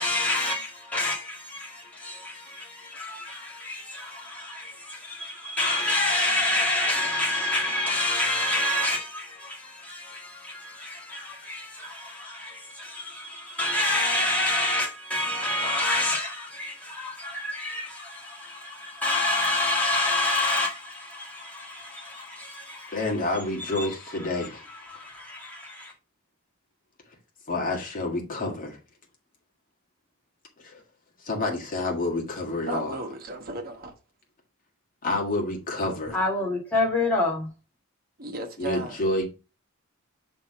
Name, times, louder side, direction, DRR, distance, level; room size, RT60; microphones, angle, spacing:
voice 1, 0.0-23.1 23.6-23.9 24.2-25.9 36.1-37.5, left 2 dB, 5° left, 1.8 m, -28 dB
voice 2, 22.9-24.6 27.5-28.8 30.6-30.8 31.2-33.0 35.0-36.2 38.6-39.2, left 2 dB, 40° left, 1.8 m, -28 dB
voice 3, 32.7-33.9 38.2-39.0, right 3 dB, 45° right, 1.2 m, -34 dB
6.3 x 3.5 x 4.8 m
head